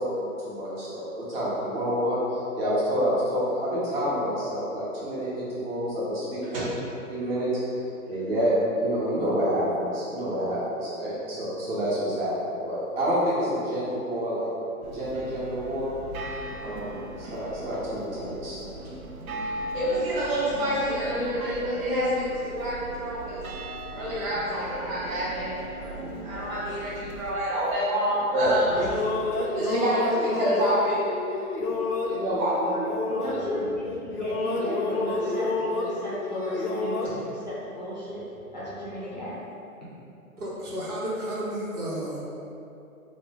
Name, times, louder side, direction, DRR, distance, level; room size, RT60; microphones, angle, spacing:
voice 1, 0.0-6.6 7.1-7.5 7.8-14.5 14.9-15.9 16.6-18.9 28.3-28.5, equal, 40° right, -9 dB, 1.1 m, -28 dB
sound 1, 14.8-27.4, right 1 dB, 70° right, 0.5 m, -39 dB
voice 2, 19.7-23.4 23.9-28.8 29.5-31.1 32.1-32.9, equal, 20° right, -12 dB, 1.0 m, -27 dB
sound 2, 28.4-33.8 34.1-37.1, left 3 dB, 90° left, 0.7 m, -29 dB
voice 3, 33.1-39.6, left 1 dB, 30° left, -10 dB, 0.4 m, -34 dB
voice 4, 40.4-42.2, right 1 dB, 90° right, -5 dB, 1.0 m, -32 dB
3.0 x 2.0 x 3.5 m, 2.8 s
hypercardioid pair, 155°, 44 cm